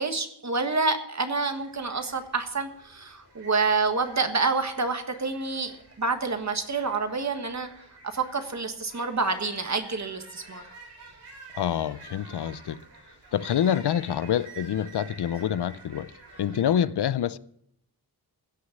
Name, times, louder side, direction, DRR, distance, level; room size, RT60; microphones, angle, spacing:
voice 1, 0.0-7.7 8.0-10.6, right 4 dB, 45° right, 1.5 m, -28 dB
sound 1, 1.5-16.9, right 3 dB, 80° right, 5.0 m, -49 dB
voice 2, 11.5-12.8 13.3-16.1 16.4-17.4, left 9 dB, 80° left, 0.6 m, -26 dB
16.5 x 6.4 x 8.2 m
wide cardioid pair, 115°, 39 cm